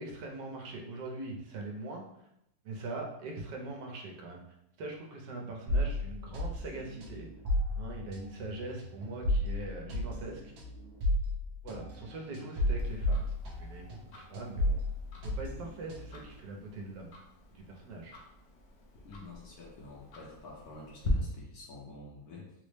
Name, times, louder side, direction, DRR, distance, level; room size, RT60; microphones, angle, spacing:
voice 1, 0.0-2.3 2.6-4.4 4.8-7.3 7.8-10.5 11.6-14.8 15.2-17.2 17.5-18.1, right 2 dB, 75° right, 1 dB, 1.3 m, -42 dB
sound 1, 5.7-14.1 14.3-16.3, left 1 dB, 60° right, 0.8 m, -33 dB
Tick-tock, 12.8-21.1, left 3 dB, 80° left, 0.6 m, -49 dB
voice 2, 19.1-22.5, left 2 dB, 65° left, -3 dB, 1.3 m, -48 dB
3.9 x 2.0 x 3.2 m, 0.79 s
omnidirectional pair, 1.9 m